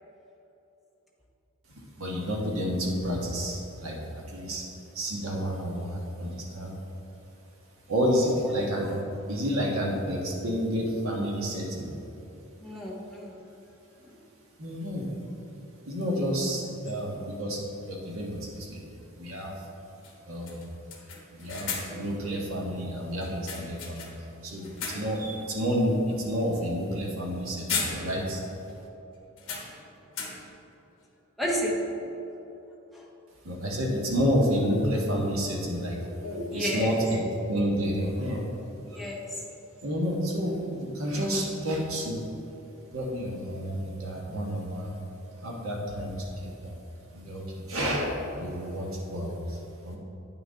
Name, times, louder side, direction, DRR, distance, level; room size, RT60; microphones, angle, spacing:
voice 1, 2.0-4.6 4.9-6.8 7.9-9.0 9.3-11.9 14.6-15.1 15.8-18.8 19.2-19.6 20.2-20.6 21.4-24.1 24.4-28.4 33.4-37.2 37.5-38.4 38.9-39.0 39.8-42.2 42.9-45.0 45.4-46.7 47.1-50.0, equal, 80° right, -2 dB, 1.5 m, -30 dB
voice 2, 12.6-13.5 14.1-14.2 31.4-31.7 32.9-33.1 36.4-37.0 38.9-39.5, equal, ahead, -4 dB, 0.9 m, -32 dB
sound 1, 16.9-17.0 19.0-19.1 19.5-19.6 20.0-20.2 20.5-22.1 23.2-24.3 24.6-25.3 25.7-25.9 27.2-27.4 27.7-28.4 28.7-28.8 29.4-30.6, left 5 dB, 65° left, 1.2 m, -36 dB
8.9 x 6.1 x 3.9 m, 3.0 s
head